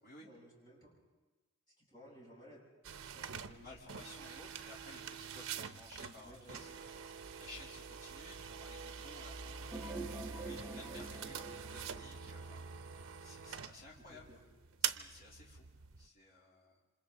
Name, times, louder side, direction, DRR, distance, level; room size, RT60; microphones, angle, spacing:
voice 1, 0.2-0.9 1.8-2.6 3.1-3.7 6.0-6.7 14.1-14.4, equal, 20° left, -5 dB, 7.4 m, -58 dB
sound 1, 2.8-16.1, right 7 dB, 75° right, 0.8 m, -45 dB
voice 2, 3.2-12.7 13.2-14.4 14.8-15.7 16.0-16.8, left 2 dB, 45° left, -4 dB, 3.2 m, -56 dB
sound 2, 9.7-12.5, right 2 dB, ahead, 1.5 m, -46 dB
28.0 x 26.5 x 3.9 m, 1.2 s
head